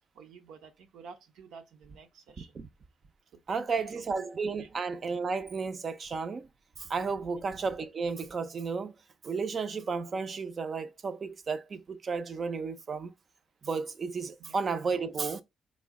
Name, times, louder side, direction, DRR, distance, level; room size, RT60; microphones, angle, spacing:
voice 1, 0.1-2.6 3.3-3.9 4.2-4.3 4.5-4.7 7.2-7.4 14.4-14.7, right 6 dB, 85° right, 0.7 m, -51 dB
voice 2, 3.5-6.5 6.8-8.9 9.2-13.1 13.6-15.4, right 4 dB, 40° right, 0.4 m, -33 dB
4.8 x 2.1 x 3.5 m
cardioid pair, 105°, 0 cm